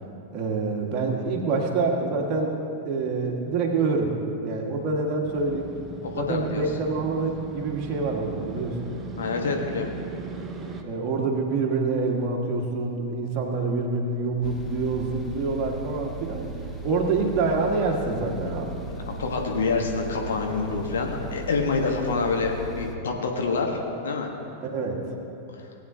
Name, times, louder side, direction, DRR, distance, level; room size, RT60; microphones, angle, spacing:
voice 1, 0.3-2.6 2.8-4.1 4.4-5.7 6.1-8.9 10.8-16.5 16.8-18.7 24.6-25.1, right 3 dB, 35° right, -1 dB, 1.6 m, -26 dB
Motorcycle, 5.2-10.8, right 4 dB, 20° right, 0.9 m, -38 dB
voice 2, 6.0-6.6 9.2-9.9 18.9-23.8 24.0-24.3 25.5-25.7, left 4 dB, 65° left, 2 dB, 1.2 m, -27 dB
sound 1, 14.4-23.0, right 1 dB, 15° left, 1.0 m, -37 dB
18.5 x 8.6 x 2.8 m, 2.8 s
figure-of-eight pair, 90°, 0 cm